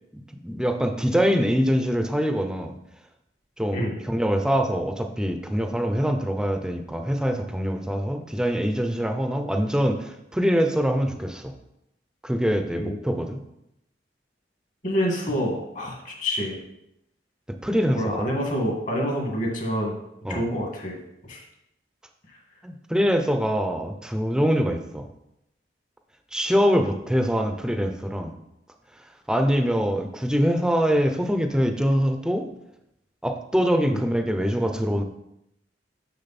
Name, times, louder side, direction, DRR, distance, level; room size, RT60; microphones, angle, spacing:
voice 1, 0.1-2.7 3.6-11.5 12.2-13.4 17.6-18.0 20.2-20.4 22.6-25.1 26.3-28.3 29.3-32.4 33.2-35.0, equal, 5° right, 6 dB, 0.6 m, -24 dB
voice 2, 14.8-16.6 17.9-20.0 20.3-21.0 21.3-21.4 33.9-34.0, equal, 45° left, 1 dB, 1.8 m, -27 dB
6.7 x 6.3 x 4.2 m, 0.84 s
head